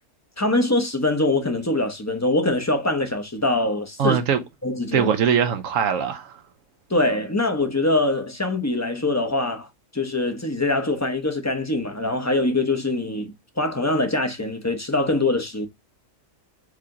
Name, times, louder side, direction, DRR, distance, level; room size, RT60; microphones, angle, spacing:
voice 1, 0.4-4.2 4.6-5.1 6.9-9.7 9.9-15.7, left 2 dB, 15° left, 0.7 m, -23 dB
voice 2, 4.0-4.4 4.9-6.4, right 7 dB, 75° right, 1.2 m, -21 dB
4.9 x 2.8 x 3.7 m
omnidirectional pair, 1.4 m